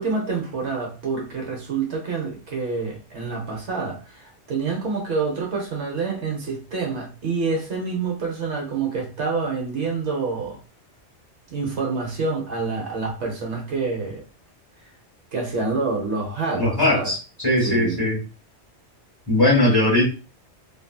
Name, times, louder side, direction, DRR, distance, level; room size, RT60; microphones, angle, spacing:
voice 1, 0.0-10.6 11.5-14.2 15.3-17.1 17.6-18.0, right 4 dB, 75° right, 0 dB, 1.3 m, -27 dB
voice 2, 16.6-18.2 19.3-20.1, left 1 dB, 20° left, -6 dB, 1.5 m, -19 dB
3.1 x 2.6 x 2.3 m, 0.33 s
omnidirectional pair, 1.2 m